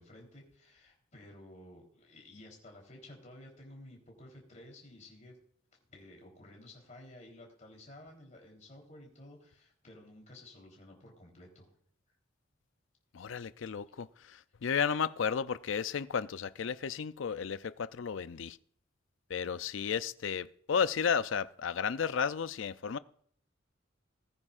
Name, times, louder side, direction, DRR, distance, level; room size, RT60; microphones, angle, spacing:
voice 1, 0.0-5.4 5.9-11.7, left 1 dB, 35° left, 3.7 m, -53 dB
voice 2, 13.1-18.6 19.3-23.0, left 6 dB, 70° left, 0.5 m, -33 dB
20.0 x 9.7 x 2.5 m
head